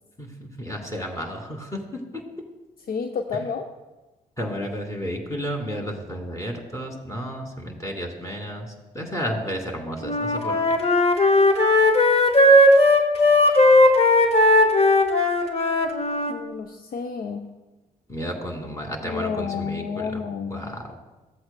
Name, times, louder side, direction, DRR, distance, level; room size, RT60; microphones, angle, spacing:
voice 1, 0.2-1.8 4.4-8.7 8.9-10.5 18.1-20.2 20.5-20.8, equal, 15° left, 1 dB, 2.5 m, -32 dB
voice 2, 2.9-3.7 16.3-17.5 19.0-20.8, left 5 dB, 55° left, 5 dB, 0.6 m, -30 dB
Wind instrument woodwind instrument, 10.0-16.3, left 1 dB, 35° left, 1.2 m, -17 dB
15.0 x 7.8 x 2.2 m, 1.1 s
hypercardioid pair, 45°, 18 cm